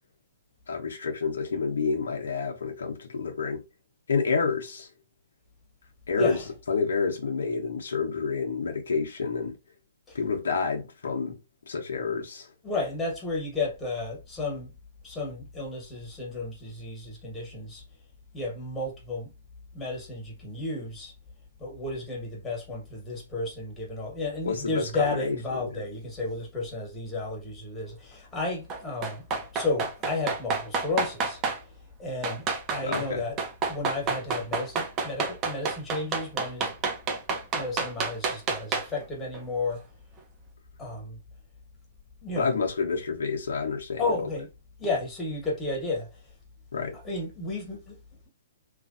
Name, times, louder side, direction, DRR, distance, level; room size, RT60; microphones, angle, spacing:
voice 1, 0.7-3.6 4.1-4.9 6.1-6.4 6.7-9.6 10.1-11.4 11.7-12.5 24.4-25.3 25.6-25.8 32.8-33.2 42.4-44.0 46.7-47.0, left 5 dB, 75° left, 0.9 m, -29 dB
voice 2, 12.6-14.7 15.0-17.8 18.3-19.3 19.7-21.1 21.6-29.3 29.5-31.4 31.7-31.8 32.0-33.4 33.7-36.7 37.5-39.8 40.8-41.2 42.2-42.6 44.0-44.5 44.8-46.2 46.9-48.0, left 2 dB, 15° left, 1.4 m, -32 dB
sound 1, 28.7-31.6 32.2-33.1 33.4-39.0 39.3-39.4, right 4 dB, 30° right, 0.7 m, -29 dB
3.1 x 2.5 x 2.6 m
hypercardioid pair, 130°, 0 cm